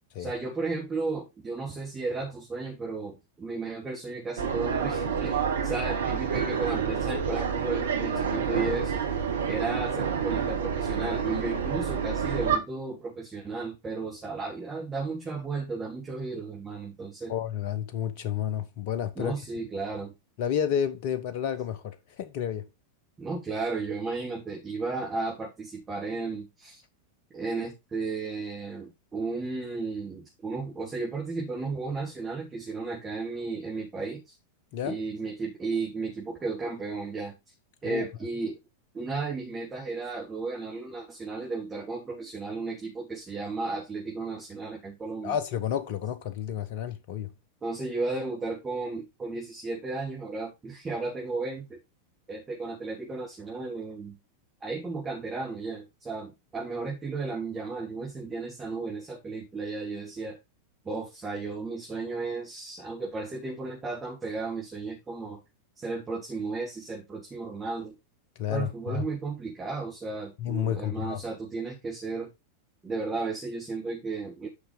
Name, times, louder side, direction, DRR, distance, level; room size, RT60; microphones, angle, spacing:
voice 1, 0.2-9.0 9.5-17.3 19.1-20.1 23.2-26.8 27.3-34.3 34.8-37.3 37.8-38.6 38.9-45.4 47.6-51.8 52.3-54.2 54.6-60.4 60.8-65.4 65.8-67.9 68.5-72.3 72.8-74.5, right 3 dB, 15° right, 3.2 m, -34 dB
sound 1, 4.4-12.6, right 7 dB, 65° right, 1.6 m, -28 dB
voice 2, 17.3-19.3 20.4-22.7 34.7-35.0 37.8-38.0 45.2-47.3 68.4-69.1 70.4-71.2, left 9 dB, 45° left, 1.0 m, -31 dB
10.0 x 5.8 x 3.9 m
figure-of-eight pair, 90°, 0 cm